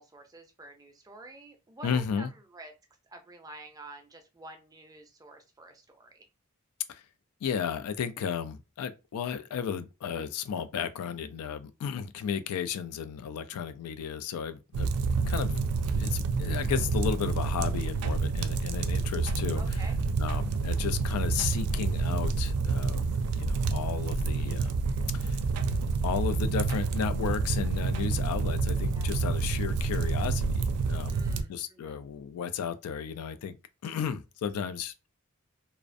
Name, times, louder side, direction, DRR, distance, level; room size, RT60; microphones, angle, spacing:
voice 1, 0.0-2.7 3.1-6.3 13.5-13.7 19.5-20.0 28.8-29.1 31.1-32.0, right 2 dB, 15° right, 0.4 m, -49 dB
voice 2, 1.8-2.3 6.9-7.0 7.4-15.0 15.3-19.8 20.2-23.1 23.3-24.8 25.1-25.4 26.0-31.2 31.5-33.6 33.8-34.9, left 7 dB, 85° left, 0.3 m, -34 dB
sound 1, 14.7-31.4, right 4 dB, 85° right, 0.3 m, -28 dB
2.4 x 2.0 x 2.5 m
head